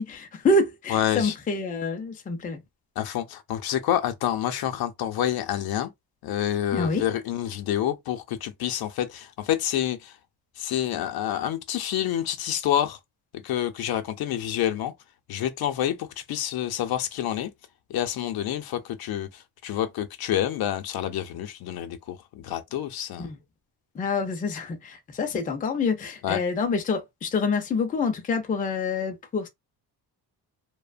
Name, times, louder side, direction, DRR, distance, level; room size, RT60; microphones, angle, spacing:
voice 1, 0.0-2.6 6.7-7.0 23.2-23.4 24.0-29.5, left 3 dB, 20° left, 0.4 m, -27 dB
voice 2, 0.9-1.3 3.0-5.9 6.2-10.1 10.6-13.0 13.4-14.9 15.3-17.5 17.9-23.3 26.2-26.4, left 11 dB, 65° left, 0.6 m, -28 dB
2.8 x 2.1 x 2.4 m
cardioid pair, 170°, 40 cm